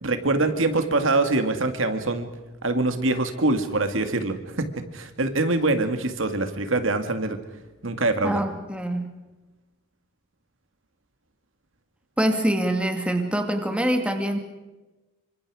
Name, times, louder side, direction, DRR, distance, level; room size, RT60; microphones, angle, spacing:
voice 1, 0.0-2.3 2.6-7.4 7.8-8.4, right 2 dB, 70° right, 8 dB, 2.2 m, -24 dB
voice 2, 8.2-9.1 12.2-14.4, right 1 dB, 5° right, 5 dB, 2.4 m, -24 dB
28.0 x 25.0 x 5.0 m, 1.1 s
head